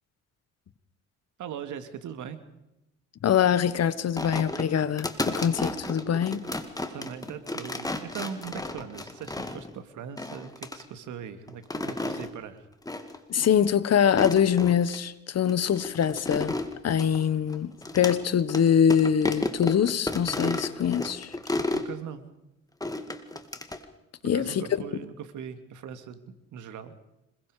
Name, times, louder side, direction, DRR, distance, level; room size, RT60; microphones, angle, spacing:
voice 1, 1.4-2.4 6.9-12.6 21.7-22.2 24.3-26.2 26.5-26.9, right 8 dB, 80° right, 2.4 m, -40 dB
voice 2, 3.2-6.5 13.3-16.6 16.8-21.3 24.2-24.6, left 8 dB, 55° left, 1.4 m, -24 dB
sound 1, 4.2-9.7 10.2-10.8 11.5-12.3 12.9-13.2 13.4-13.5 14.0-15.0 15.5-18.2 18.5-18.6 18.9-21.9 22.8-23.8, left 2 dB, 10° left, 2.2 m, -32 dB
26.5 x 22.0 x 5.1 m
cardioid pair, 90°, 30 cm